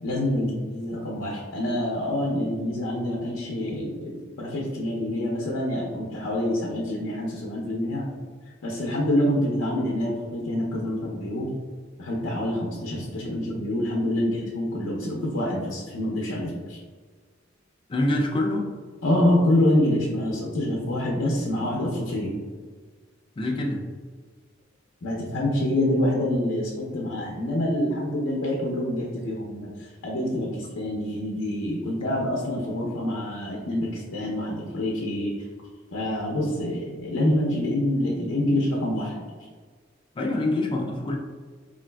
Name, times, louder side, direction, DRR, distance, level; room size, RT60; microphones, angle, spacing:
voice 1, 0.0-8.1 8.6-11.5 12.0-16.8 19.0-22.4 25.0-35.3 35.9-39.2, left 1 dB, 85° left, -3 dB, 0.6 m, -26 dB
voice 2, 17.9-18.7 23.4-23.9 40.2-41.2, left 1 dB, 25° left, 1 dB, 0.4 m, -25 dB
3.9 x 2.5 x 2.2 m, 1.5 s
head